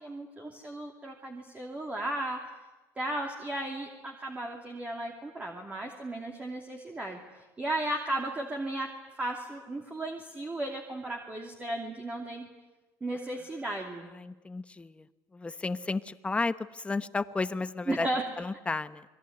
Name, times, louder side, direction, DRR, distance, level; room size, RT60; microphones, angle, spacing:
voice 1, 0.0-2.4 3.0-8.9 9.2-12.5 13.0-14.1 17.9-18.2, right 1 dB, 20° right, 2 dB, 2.9 m, -35 dB
voice 2, 14.1-15.1 15.3-18.1 18.4-19.0, left 3 dB, 15° left, 12 dB, 1.1 m, -33 dB
28.0 x 22.0 x 9.6 m, 1.1 s
cardioid pair, 125°, 8 cm